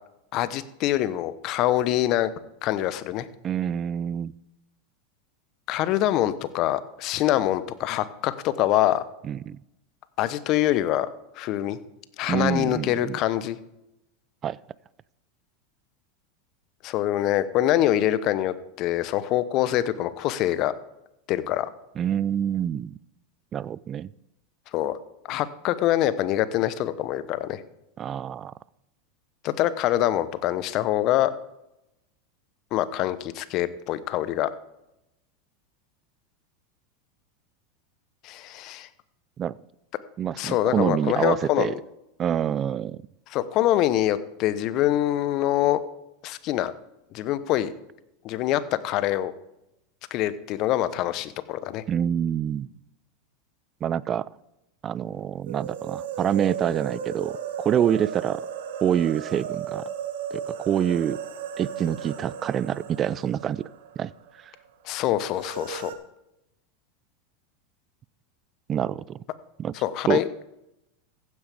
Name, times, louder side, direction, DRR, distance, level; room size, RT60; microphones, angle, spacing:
voice 1, 0.3-2.3 2.6-3.3 5.7-9.0 10.2-11.1 11.4-11.8 12.2-13.6 16.8-20.7 21.3-21.7 24.7-24.9 25.3-27.6 29.4-31.3 32.7-34.5 38.2-38.9 40.4-41.7 43.3-45.8 46.2-46.7 47.1-47.7 48.2-49.3 50.1-51.8 64.8-65.9 69.8-70.2, left 13 dB, 50° left, 15 dB, 0.9 m, -24 dB
voice 2, 3.4-4.3 9.3-9.6 12.3-13.2 14.4-14.6 22.0-22.9 23.5-24.1 28.0-28.5 39.4-39.5 40.2-41.7 42.2-43.0 51.9-52.7 53.8-54.3 54.8-58.4 58.8-59.8 60.3-61.2 61.6-63.7 64.0-64.1 68.7-69.2 69.6-69.7 70.1-70.2, right 9 dB, 35° right, 21 dB, 0.4 m, -26 dB
sound 1, 55.5-64.3 64.6-64.7 65.3-65.9, right 8 dB, 70° right, 1.3 m, -35 dB
15.5 x 9.6 x 3.5 m, 0.88 s
hypercardioid pair, 90°, 0 cm